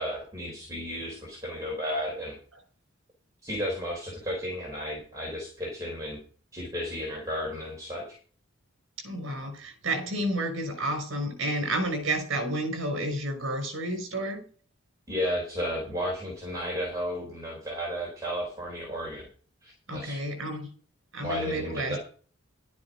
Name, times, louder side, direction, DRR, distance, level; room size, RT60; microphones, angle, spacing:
voice 1, 0.0-2.4 3.4-6.2 6.5-8.2 15.1-19.3 19.6-20.2 21.2-22.0, equal, 15° right, -3 dB, 4.1 m, -33 dB
voice 2, 9.0-14.4 19.9-20.7 21.1-22.0, right 1 dB, 65° right, 5 dB, 5.8 m, -30 dB
12.0 x 9.6 x 5.0 m, 0.41 s
head